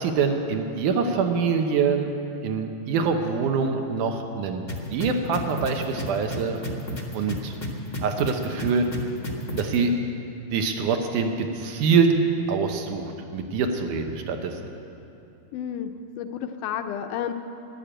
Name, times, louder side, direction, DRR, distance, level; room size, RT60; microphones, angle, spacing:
voice 1, 0.0-2.1 2.4-4.6 4.9-6.6 7.1-7.5 8.0-8.9 9.6-9.9 10.5-12.1 12.5-14.6, right 5 dB, 75° right, 5 dB, 2.5 m, -24 dB
sound 1, 4.7-9.8, left 1 dB, 45° left, 0.7 m, -31 dB
voice 2, 15.5-17.3, left 9 dB, 80° left, 7 dB, 2.1 m, -31 dB
12.0 x 11.5 x 8.9 m, 2.7 s
omnidirectional pair, 3.8 m